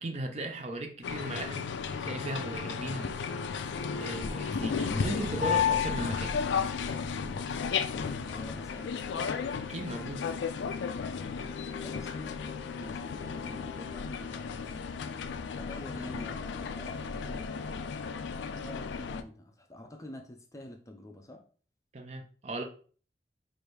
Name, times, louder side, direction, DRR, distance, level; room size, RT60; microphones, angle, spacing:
voice 1, 0.0-3.2 3.5-6.4 9.7-10.3 21.9-22.6, right 1 dB, 35° right, 0.5 m, -37 dB
sound 1, 1.0-19.2, left 6 dB, 85° left, 0.3 m, -34 dB
voice 2, 4.2-5.6 7.1-7.5 7.9-9.3 11.0-11.3 11.8-14.9 15.5-18.0 18.5-21.4, left 1 dB, 20° left, 0.4 m, -46 dB
4.6 x 2.6 x 3.2 m
head